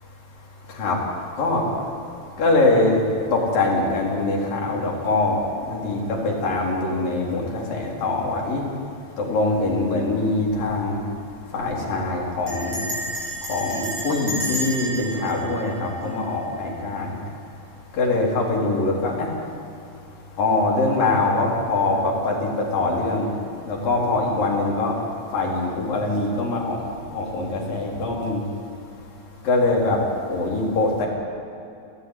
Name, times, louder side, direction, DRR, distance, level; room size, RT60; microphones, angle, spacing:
voice 1, 2.4-3.0 3.3-5.4 5.7-8.6 9.2-11.0 11.5-12.9 13.5-17.1 18.0-19.3 20.4-23.3 23.7-25.0 25.3-26.8 27.1-28.4 29.5-30.0 30.3-31.1, left 2 dB, 70° left, -2 dB, 5.5 m, -23 dB
Bell, 11.5-11.7 12.5-16.6, right 1 dB, 40° right, 7.2 m, -32 dB
28.0 x 14.0 x 9.7 m, 2.7 s
omnidirectional pair, 4.1 m